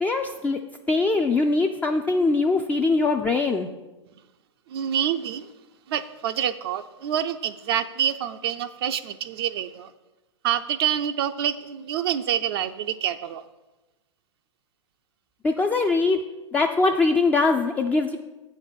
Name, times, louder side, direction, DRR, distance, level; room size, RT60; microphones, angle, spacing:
voice 1, 0.0-0.6 0.9-3.7 15.4-16.2 16.5-18.2, left 3 dB, 10° left, 4 dB, 0.3 m, -22 dB
voice 2, 4.7-5.5 5.9-9.9 10.4-13.4, right 10 dB, 55° right, 8 dB, 0.4 m, -27 dB
7.9 x 4.5 x 6.7 m, 1.1 s
figure-of-eight pair, 105°, 16 cm